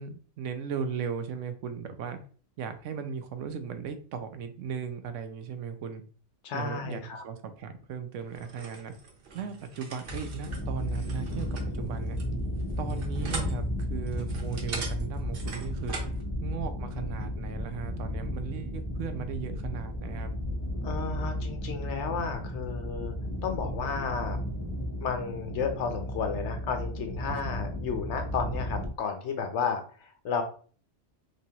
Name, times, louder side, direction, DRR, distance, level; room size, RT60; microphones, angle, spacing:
voice 1, 0.0-2.2 2.6-6.0 6.5-8.9 9.3-12.2 12.8-15.9 16.4-20.3 27.3-27.5, right 6 dB, 85° right, 8 dB, 0.9 m, -37 dB
voice 2, 6.4-7.2 20.8-23.1 23.4-24.4 25.0-30.4, left 6 dB, 70° left, 6 dB, 1.0 m, -32 dB
sound 1, 8.3-16.2, right 4 dB, 55° right, 0.9 m, -42 dB
sound 2, 10.0-28.9, equal, 25° left, 0.8 m, -34 dB
3.5 x 3.0 x 2.8 m, 0.42 s
omnidirectional pair, 1.3 m